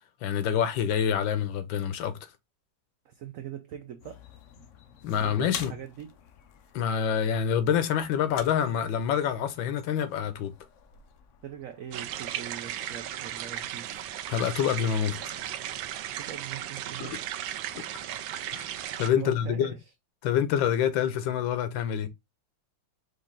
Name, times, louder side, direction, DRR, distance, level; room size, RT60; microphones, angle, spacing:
voice 1, 0.2-2.3 5.0-5.7 6.7-10.5 14.3-15.2 17.0-17.2 17.7-17.8 18.5-18.7 19.0-19.7 20.2-22.1, left 8 dB, 90° left, 1.4 m, -27 dB
voice 2, 3.0-4.3 4.6-4.7 5.2-6.1 11.4-13.9 16.1-17.3 19.2-19.8, right 9 dB, 70° right, 0.8 m, -42 dB
sound 1, 4.0-15.8, left 8 dB, 70° left, 0.7 m, -49 dB
sound 2, 11.9-19.1, right 11 dB, 90° right, 1.3 m, -36 dB
5.2 x 2.7 x 3.6 m
omnidirectional pair, 2.0 m